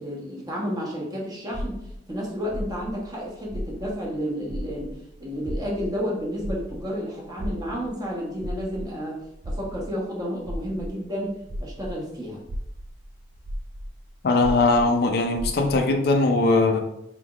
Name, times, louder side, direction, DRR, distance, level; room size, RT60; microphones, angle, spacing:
voice 1, 0.0-9.2 9.4-12.4, equal, 20° right, -4 dB, 0.9 m, -31 dB
sound 1, 1.5-4.2 4.5-12.0 12.4-15.9, equal, 45° right, 0.4 m, -35 dB
voice 2, 14.2-16.8, left 3 dB, 60° left, 4 dB, 0.4 m, -20 dB
4.0 x 3.3 x 2.4 m, 0.82 s
head